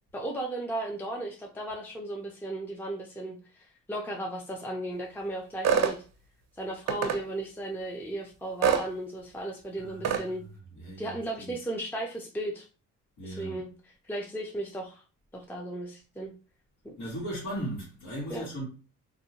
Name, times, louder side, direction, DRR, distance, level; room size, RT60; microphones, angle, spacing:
voice 1, 0.1-6.0 6.6-10.4 11.0-12.7 13.2-15.0 15.3-16.3 16.8-16.9 18.3-18.5, right 1 dB, 5° left, 0.5 m, -35 dB
sound 1, 5.6-6.0 6.9-7.2 8.6-8.9 10.0-10.2, right 7 dB, 55° right, 0.6 m, -24 dB
voice 2, 9.8-11.6 13.2-13.6 17.0-18.6, right 1 dB, 75° left, 1.3 m, -38 dB
2.6 x 2.2 x 2.8 m
cardioid pair, 90°, 30 cm